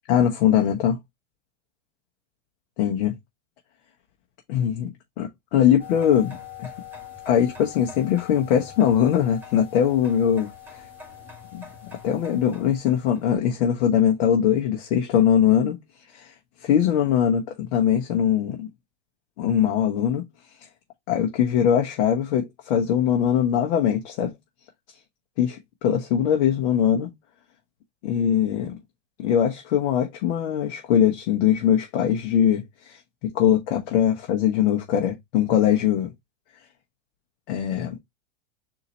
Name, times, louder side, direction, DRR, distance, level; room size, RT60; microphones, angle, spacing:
voice 1, 0.1-1.0 2.8-3.1 4.5-4.9 5.2-6.7 7.2-10.9 11.5-11.6 12.0-15.8 16.1-16.3 16.6-18.7 19.4-20.2 21.1-24.3 25.4-27.1 28.0-28.8 29.2-36.1 37.5-37.9, left 9 dB, 65° left, 1.1 m, -21 dB
sound 1, 5.8-13.3, left 7 dB, 5° right, 1.8 m, -43 dB
4.0 x 2.8 x 4.0 m
hypercardioid pair, 120°, 35 cm